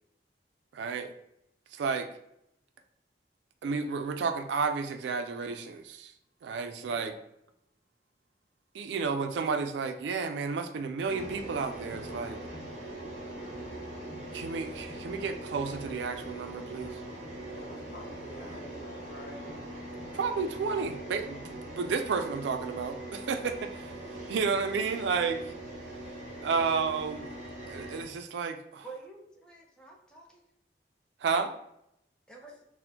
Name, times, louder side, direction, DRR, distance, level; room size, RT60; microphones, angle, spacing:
voice 1, 0.7-1.1 1.7-2.1 3.6-6.1 6.4-7.1 8.7-12.4 14.3-17.0 20.1-23.9 24.3-25.5 26.4-27.3 27.7-28.8 31.2-31.5, right 5 dB, 90° right, 8 dB, 0.3 m, -31 dB
voice 2, 9.0-9.5 17.2-19.6, left 1 dB, 60° left, -1 dB, 0.8 m, -48 dB
sound 1, 11.1-28.0, right 1 dB, 40° right, 0.8 m, -42 dB
voice 3, 28.8-30.4 32.3-32.7, right 3 dB, 5° left, -2 dB, 0.5 m, -48 dB
4.2 x 2.1 x 2.7 m, 0.79 s
head